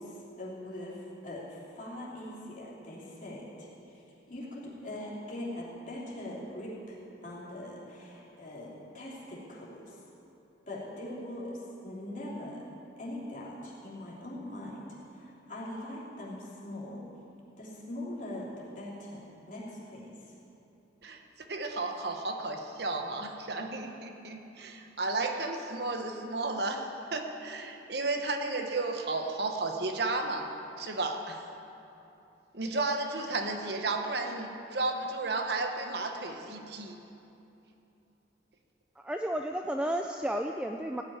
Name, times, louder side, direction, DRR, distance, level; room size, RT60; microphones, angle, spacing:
voice 1, 0.0-3.7 3.9-4.0 4.3-9.9 10.7-12.6 13.0-14.9 15.1-17.0 17.6-20.1, left 1 dB, 40° left, -6 dB, 3.2 m, -41 dB
voice 2, 21.0-30.5 30.8-31.4 32.5-37.0, right 3 dB, 60° right, 4 dB, 1.1 m, -33 dB
voice 3, 39.0-41.0, right 1 dB, 5° right, 3 dB, 0.4 m, -32 dB
16.5 x 6.1 x 9.8 m, 2.8 s
head